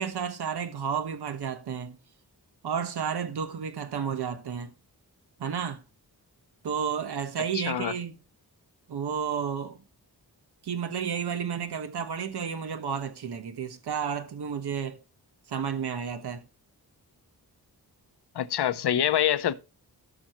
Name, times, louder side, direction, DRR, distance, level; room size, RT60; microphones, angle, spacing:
voice 1, 0.0-2.0 2.6-4.7 5.4-5.8 6.6-8.2 8.9-9.8 10.6-15.0 15.5-16.4, right 7 dB, 85° right, 1.2 m, -31 dB
voice 2, 7.5-7.9 18.3-19.5, left 10 dB, 85° left, 0.8 m, -25 dB
17.0 x 6.2 x 3.0 m
wide cardioid pair, 150°, 39 cm